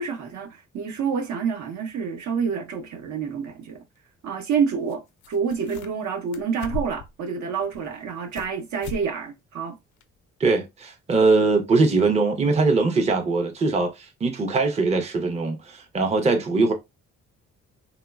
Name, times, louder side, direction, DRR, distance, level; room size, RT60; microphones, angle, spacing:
voice 1, 0.0-3.8 4.2-5.0 5.3-9.8, right 6 dB, 70° right, 0.7 m, -28 dB
sound 1, 4.9-5.0 5.2-6.0 6.3-7.1 7.6-8.5 8.8-9.1 9.4-9.5 10.0-10.1, left 2 dB, 75° left, 0.5 m, -36 dB
voice 2, 10.4-16.7, right 3 dB, 20° right, 0.5 m, -21 dB
2.9 x 2.1 x 2.2 m
cardioid pair, 90°, 30 cm